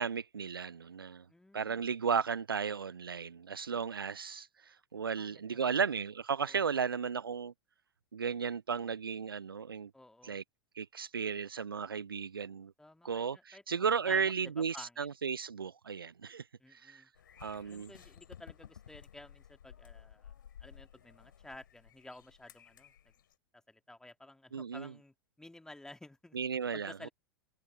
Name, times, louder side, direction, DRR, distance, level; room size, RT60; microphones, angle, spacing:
voice 1, 0.0-1.2 1.5-7.5 8.1-9.9 10.2-10.4 10.8-12.7 13.0-16.4 16.7-17.0 17.4-17.9 24.5-24.9 26.3-27.1, right 6 dB, 80° right, 0.4 m, -35 dB
voice 2, 1.3-1.8 3.7-3.8 5.1-5.8 6.4-6.8 9.9-10.4 12.8-15.1 16.6-17.1 17.6-20.3 20.6-22.9 23.7-26.4 26.7-27.1, left 2 dB, 5° left, 2.4 m, -53 dB
sound 1, 17.1-23.3, left 9 dB, 65° left, 2.5 m, -55 dB
figure-of-eight pair, 90°, 12 cm